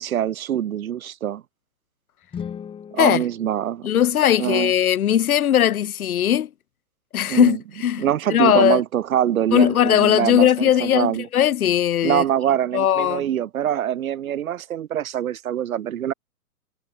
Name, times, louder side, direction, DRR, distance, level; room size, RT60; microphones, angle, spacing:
voice 1, 0.0-1.4 2.9-3.9 4.4-4.7 7.3-7.6 8.0-11.3 12.0-16.1, right 10 dB, 60° right, 3.1 m, -24 dB
sound 1, 2.2-4.5, left 7 dB, 10° left, 2.1 m, -38 dB
voice 2, 3.8-6.5 7.1-8.8 9.5-12.2 12.7-13.2, left 10 dB, 65° left, 1.7 m, -19 dB
hypercardioid pair, 140°, 46 cm